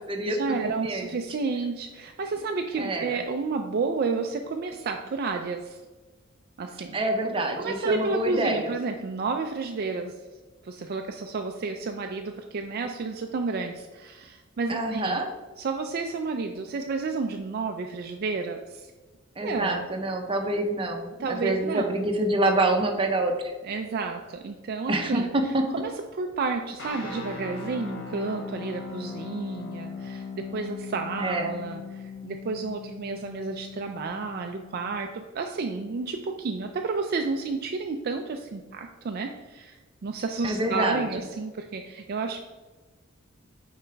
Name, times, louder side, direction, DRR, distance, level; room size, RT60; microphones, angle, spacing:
voice 1, 0.3-5.8 6.6-7.0 7.6-10.2 10.6-15.2 15.6-18.9 19.4-19.9 21.2-22.0 23.6-42.4, right 4 dB, 50° right, 4 dB, 0.4 m, -31 dB
voice 2, 2.8-3.2 6.9-8.7 14.7-15.3 19.4-23.3 24.9-25.6 31.2-31.5 40.4-41.0, right 2 dB, 25° right, 3 dB, 0.8 m, -26 dB
sound 1, 26.8-35.0, left 4 dB, 60° left, 1.1 m, -39 dB
7.0 x 4.7 x 3.4 m, 1.3 s
head